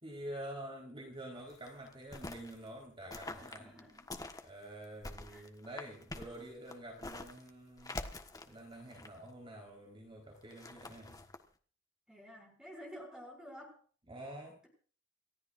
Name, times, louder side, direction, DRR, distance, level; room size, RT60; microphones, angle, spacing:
voice 1, 0.0-3.8 4.4-8.0 8.5-11.2 14.1-14.6, right 1 dB, 30° right, 0 dB, 4.2 m, -47 dB
sound 1, 1.4-2.6 3.1-4.4 4.8-7.5 7.8-9.3 10.4-11.4, left 2 dB, 20° left, 1.4 m, -46 dB
voice 2, 3.3-4.1 5.3-5.5 12.1-13.8, equal, 5° right, 2 dB, 6.4 m, -51 dB
29.0 x 14.0 x 2.6 m, 0.42 s
head